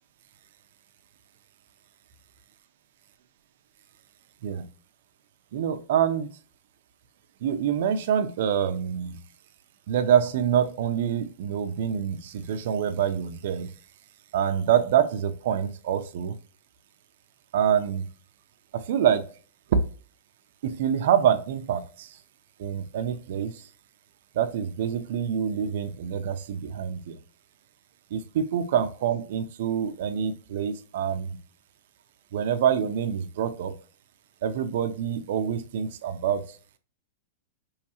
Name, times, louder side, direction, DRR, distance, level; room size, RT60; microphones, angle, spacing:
voice 1, 5.5-6.3 7.4-9.2 9.9-13.7 14.3-16.4 17.5-18.1 18.7-19.3 19.7-19.8 20.6-22.2 22.6-23.6 24.3-27.2 28.1-31.4 32.3-33.7 34.4-36.6, right 8 dB, 55° right, 9 dB, 0.5 m, -26 dB
4.7 x 3.1 x 2.8 m, 0.38 s
supercardioid pair, 175°, 0 cm